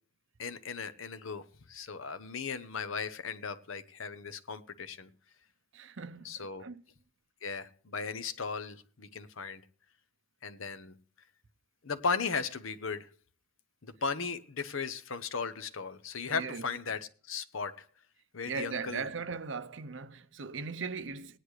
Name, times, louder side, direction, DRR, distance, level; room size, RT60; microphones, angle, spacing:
voice 1, 0.4-5.1 6.2-6.6 7.4-9.6 10.4-10.9 11.8-13.1 13.8-17.0 17.3-17.9 18.3-19.1, left 5 dB, 85° left, 0.9 m, -36 dB
voice 2, 5.7-6.8 16.3-16.7 18.4-21.4, right 5 dB, 65° right, 0.7 m, -39 dB
18.0 x 10.0 x 3.2 m
head